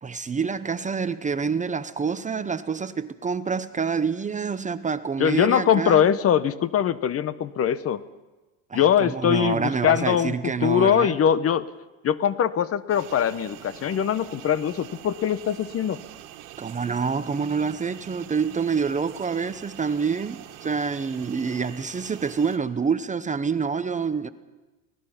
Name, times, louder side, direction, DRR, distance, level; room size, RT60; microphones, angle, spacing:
voice 1, 0.0-6.0 8.7-11.1 16.6-24.3, right 5 dB, 15° right, 0.8 m, -27 dB
voice 2, 5.2-8.0 8.7-10.3 10.6-11.6 12.0-16.0, left 9 dB, 35° left, 0.9 m, -22 dB
sound 1, 12.9-22.6, right 13 dB, 65° right, 2.0 m, -44 dB
24.0 x 18.5 x 5.8 m
supercardioid pair, 105°, 43 cm